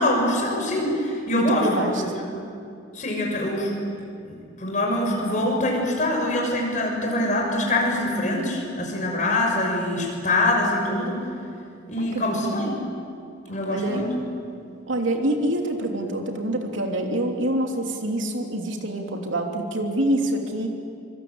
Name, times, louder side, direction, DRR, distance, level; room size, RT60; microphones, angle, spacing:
voice 1, 0.0-1.7 2.0-2.1 2.3-2.4 2.9-3.7 4.2-11.2 11.9-12.8 13.5-14.1, left 1 dB, 40° left, 0 dB, 6.5 m, -24 dB
voice 2, 1.5-2.0 12.0-12.7 13.5-14.1 14.9-20.7, right 1 dB, 80° right, 2 dB, 3.2 m, -26 dB
25.0 x 24.5 x 8.9 m, 2.5 s
head